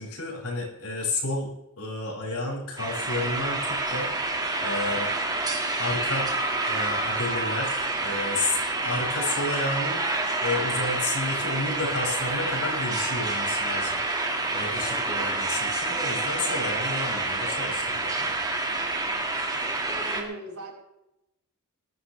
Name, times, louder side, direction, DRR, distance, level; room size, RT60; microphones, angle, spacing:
voice 1, 0.0-1.5 1.8-4.1 4.6-5.1 5.8-6.3 6.7-14.0 14.5-18.3, left 2 dB, 75° left, -2 dB, 7.0 m, -31 dB
sound 1, 2.8-20.2, right 2 dB, 15° right, 2.2 m, -28 dB
sound 2, 5.1-5.6 6.3-9.6 9.9-10.3 10.7-11.0 11.3-11.4 11.6-11.7 12.0-15.0, equal, 60° right, 6.5 m, -45 dB
voice 2, 20.1-20.7, right 2 dB, 85° right, -1 dB, 4.6 m, -38 dB
19.0 x 14.0 x 3.4 m, 0.89 s
head